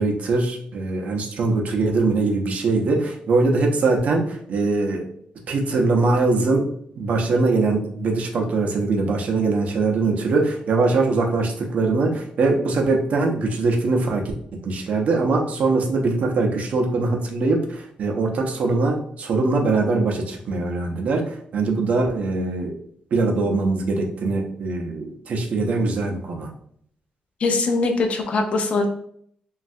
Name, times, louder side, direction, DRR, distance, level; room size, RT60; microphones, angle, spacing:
voice 1, 0.0-5.1 5.5-6.7 7.0-14.3 14.6-22.7 23.1-26.5, right 3 dB, 55° right, 1 dB, 0.5 m, -22 dB
voice 2, 27.4-28.9, left 3 dB, 50° left, 5 dB, 0.4 m, -21 dB
3.1 x 2.3 x 2.6 m, 0.65 s
cardioid pair, 135°, 3 cm